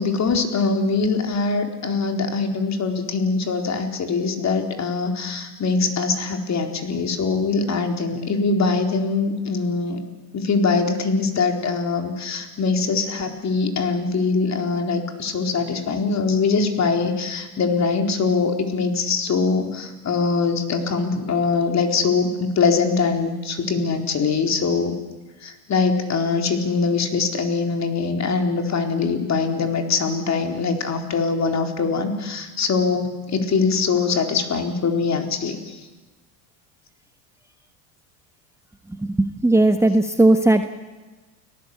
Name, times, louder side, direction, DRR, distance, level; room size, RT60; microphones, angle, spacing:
voice 1, 0.0-10.0 10.3-25.0 25.4-35.8, left 4 dB, 35° left, 5 dB, 4.3 m, -22 dB
voice 2, 38.9-40.6, right 2 dB, 5° right, 7 dB, 1.3 m, -17 dB
30.0 x 19.0 x 8.6 m, 1.2 s
hypercardioid pair, 90°, 49 cm